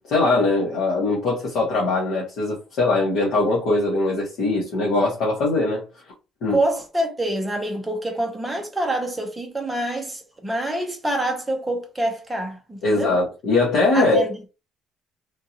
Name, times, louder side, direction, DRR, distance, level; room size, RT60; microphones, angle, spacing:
voice 1, 0.1-5.8 6.4-6.6 12.8-14.3, left 2 dB, 60° left, 1.5 m, -21 dB
voice 2, 6.5-13.1 13.9-14.4, right 1 dB, 10° right, 0.8 m, -26 dB
3.7 x 2.6 x 2.9 m
cardioid pair, 155°, 0 cm